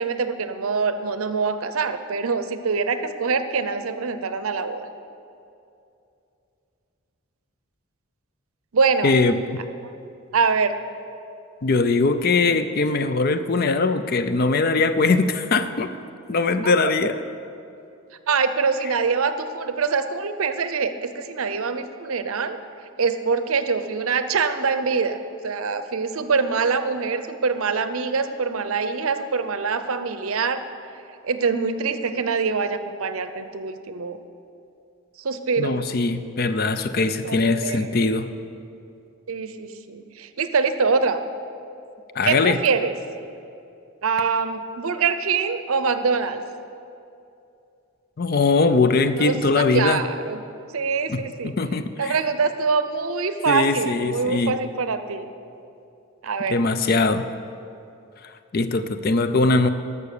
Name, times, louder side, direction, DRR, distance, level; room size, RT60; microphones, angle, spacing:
voice 1, 0.0-4.9 8.7-9.1 10.3-10.8 16.6-16.9 18.3-22.6 23.0-25.2 25.4-30.6 31.2-34.2 35.2-35.8 37.2-38.1 39.3-41.2 42.2-42.9 44.0-46.4 49.2-50.4 50.7-51.5 52.0-55.3 56.2-56.6, right 5 dB, 75° right, 10 dB, 0.6 m, -24 dB
voice 2, 9.0-9.4 11.6-15.9 16.3-17.2 35.6-38.3 42.2-42.6 48.2-50.0 51.1-52.1 53.5-54.6 56.5-57.3 58.2-59.7, left 3 dB, 45° left, 10 dB, 0.4 m, -21 dB
12.0 x 6.8 x 6.7 m, 2.6 s
head